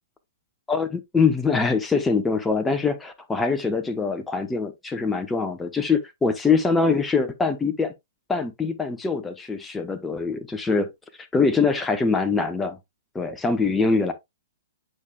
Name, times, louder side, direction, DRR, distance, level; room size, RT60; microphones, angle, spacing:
voice 1, 0.7-7.9 8.3-10.9 11.3-12.8 13.1-14.1, left 4 dB, 10° left, 0.9 m, -23 dB
8.5 x 5.0 x 2.2 m
figure-of-eight pair, 115°, 0 cm